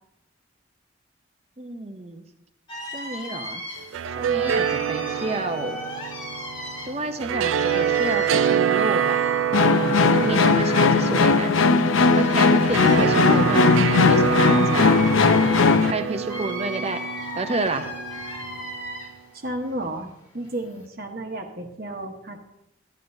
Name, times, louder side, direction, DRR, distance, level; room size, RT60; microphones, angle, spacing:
voice 1, 1.6-2.2 2.9-3.6 4.2-5.8 6.9-9.2 10.1-11.6 12.1-15.1 15.9-17.0 17.4-17.9, right 2 dB, 30° right, 8 dB, 0.6 m, -30 dB
sound 1, 2.7-19.3 19.7-20.8, left 1 dB, 25° left, 1.6 m, -37 dB
sound 2, 3.8-19.0, right 8 dB, 75° right, 0.4 m, -27 dB
sound 3, 9.5-15.9, left 4 dB, 75° left, 0.6 m, -18 dB
voice 2, 19.4-20.1 20.3-22.4, right 1 dB, 50° right, 4 dB, 1.0 m, -32 dB
12.5 x 9.5 x 2.7 m, 0.84 s
head